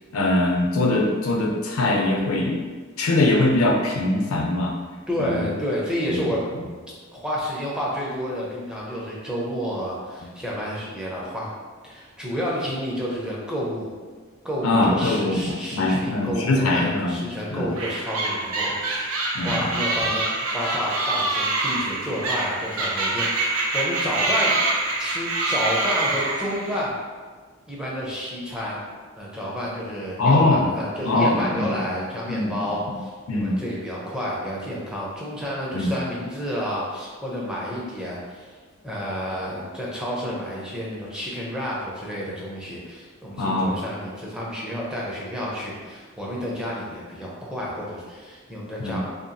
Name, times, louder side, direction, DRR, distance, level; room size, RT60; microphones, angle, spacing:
voice 1, 0.1-2.6 3.0-4.7 5.2-5.4 6.1-6.2 6.6-6.7 14.6-17.2 17.5-17.7 19.3-19.7 30.2-30.7 31.0-32.0 32.3-32.5 32.9-33.0 33.3-33.6 35.7-35.9 43.4-43.8 48.8-49.0, left 2 dB, 85° left, 0 dB, 0.5 m, -22 dB
voice 2, 5.1-6.4 7.1-11.5 11.8-14.0 14.4-19.2 19.4-20.3 20.5-24.6 25.0-27.0 27.7-28.8 29.2-38.5 38.8-49.1, equal, 5° right, -5 dB, 0.4 m, -30 dB
sound 1, 17.8-26.8, right 2 dB, 80° right, 0.5 m, -25 dB
2.8 x 2.3 x 2.5 m, 1.5 s
head